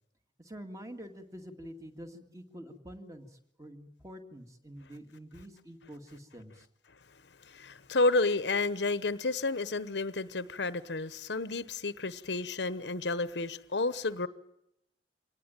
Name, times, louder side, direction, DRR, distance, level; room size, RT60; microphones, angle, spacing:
voice 1, 0.4-6.7, equal, 20° right, 5 dB, 2.2 m, -47 dB
voice 2, 7.5-14.3, left 3 dB, 85° left, 15 dB, 1.1 m, -31 dB
25.5 x 19.0 x 9.1 m, 0.79 s
head